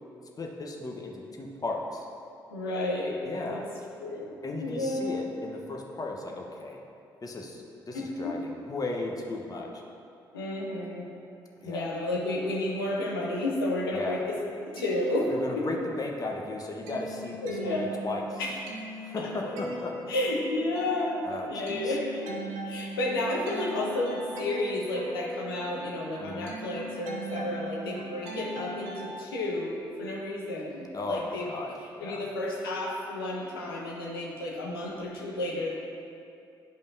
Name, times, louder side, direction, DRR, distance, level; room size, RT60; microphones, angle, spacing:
voice 1, 0.4-2.1 3.2-3.6 4.4-6.8 7.2-9.8 11.6-11.9 13.9-14.2 15.3-18.4 19.0-20.0 21.2-21.9 26.2-26.5 30.9-32.2, left 2 dB, 30° left, 0 dB, 1.0 m, -36 dB
voice 2, 2.5-3.2 3.5-3.6 4.0-4.3 4.6-5.2 7.9-8.3 10.3-11.1 11.6-14.4 14.6-15.7 17.4-17.9 18.4-18.6 19.2-19.6 20.1-22.3 22.6-31.5 32.0-35.7, left 1 dB, 80° left, -2 dB, 0.9 m, -31 dB
sound 1, 14.5-16.0 16.3-29.2, right 1 dB, 70° right, 0.8 m, -40 dB
10.0 x 5.2 x 2.7 m, 2.6 s
figure-of-eight pair, 40°, 12 cm